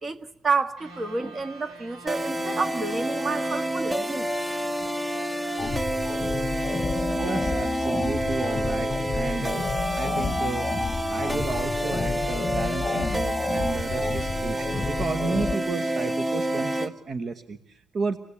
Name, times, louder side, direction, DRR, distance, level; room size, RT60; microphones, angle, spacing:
voice 1, 0.0-4.3, right 4 dB, 35° right, 1.7 m, -29 dB
sound 1, 0.8-4.0, right 2 dB, 75° right, 7.6 m, -46 dB
sound 2, 2.1-16.9, right 1 dB, 20° right, 1.3 m, -29 dB
sound 3, 5.6-15.6, left 4 dB, 30° left, 1.1 m, -30 dB
voice 2, 7.1-10.7 11.1-18.2, right 4 dB, 50° right, 1.2 m, -32 dB
27.0 x 18.0 x 8.5 m
cardioid pair, 90°, 0 cm